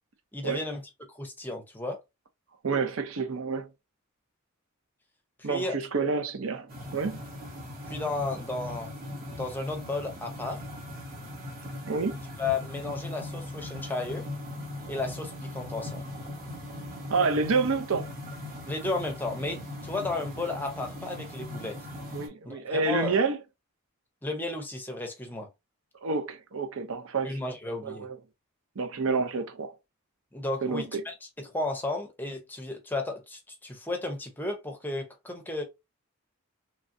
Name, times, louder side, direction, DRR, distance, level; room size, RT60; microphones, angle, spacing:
voice 1, 0.3-0.8 1.1-2.0 5.4-6.1 7.9-8.9 9.3-10.6 12.4-14.2 14.9-16.0 18.7-21.8 22.4-23.1 24.2-25.5 27.2-28.0 30.3-35.6, left 2 dB, 10° left, 0.6 m, -33 dB
voice 2, 2.6-3.7 5.4-6.7 6.9-7.2 11.9-12.2 17.1-18.1 22.1-23.4 26.0-27.4 27.8-28.2 28.8-29.7 30.6-31.0, right 4 dB, 65° right, 0.6 m, -28 dB
sound 1, 6.7-22.3, left 1 dB, 40° right, 1.1 m, -39 dB
3.2 x 2.4 x 2.6 m
head